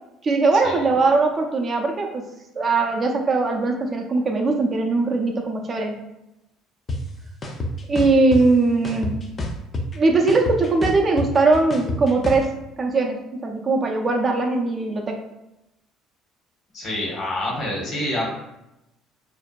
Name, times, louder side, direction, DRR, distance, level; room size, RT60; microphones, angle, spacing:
voice 1, 0.2-2.2 2.5-6.0 7.9-9.2 9.9-12.5 12.8-15.2, right 3 dB, 40° right, 2 dB, 0.4 m, -20 dB
sound 1, 6.9-7.0 7.4-8.4 8.8-10.0 10.3-12.4, left 2 dB, 35° left, 0.4 m, -27 dB
voice 2, 16.7-18.3, left 1 dB, 55° left, -3 dB, 0.9 m, -27 dB
2.6 x 2.1 x 2.2 m, 0.90 s
hypercardioid pair, 60°, 0 cm